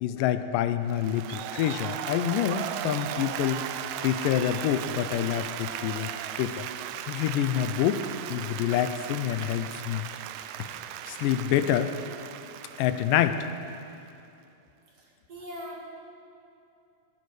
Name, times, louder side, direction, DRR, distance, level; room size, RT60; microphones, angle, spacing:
voice 1, 0.0-3.6 4.0-6.1 6.4-6.7 7.1-8.0 8.3-10.1 11.1-11.9 12.8-13.4, left 11 dB, 90° left, 11 dB, 2.3 m, -27 dB
Applause, 0.9-14.1, right 11 dB, 80° right, 1.7 m, -37 dB
voice 2, 15.3-15.9, equal, 50° right, -2 dB, 2.8 m, -39 dB
17.5 x 12.5 x 4.8 m, 2.6 s
omnidirectional pair, 3.8 m